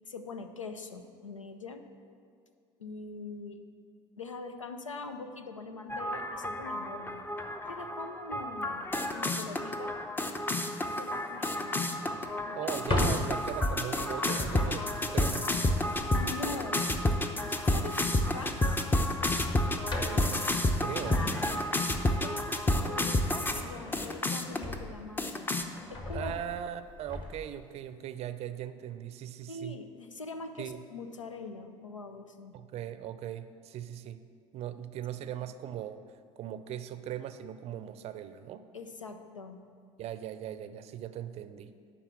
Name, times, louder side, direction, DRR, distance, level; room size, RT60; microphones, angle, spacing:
voice 1, 0.0-1.8 2.8-3.6 4.2-7.3 7.7-8.9 9.1-10.0 10.9-11.8 12.4-12.7 16.1-17.0 17.4-18.6 22.0-22.5 22.8-25.5 25.9-26.4 29.5-32.6 35.2-35.3 38.7-39.6, left 3 dB, 85° left, 8 dB, 0.6 m, -43 dB
sound 1, 5.9-23.6 23.9-24.7 25.2-25.6, left 1 dB, 15° left, 0.7 m, -30 dB
voice 2, 12.5-15.5 19.9-21.3 26.1-29.7 30.6-30.8 32.5-34.2 34.5-36.0 36.4-38.6 40.0-41.7, right 11 dB, 40° right, 12 dB, 0.5 m, -39 dB
Drawer open or close, 12.7-16.3 17.8-18.1 18.4-18.6 19.1-22.0 22.5-25.2 25.6-27.5, left 1 dB, 30° left, 1.6 m, -37 dB
11.0 x 4.1 x 7.4 m, 2.3 s
figure-of-eight pair, 65°, 16 cm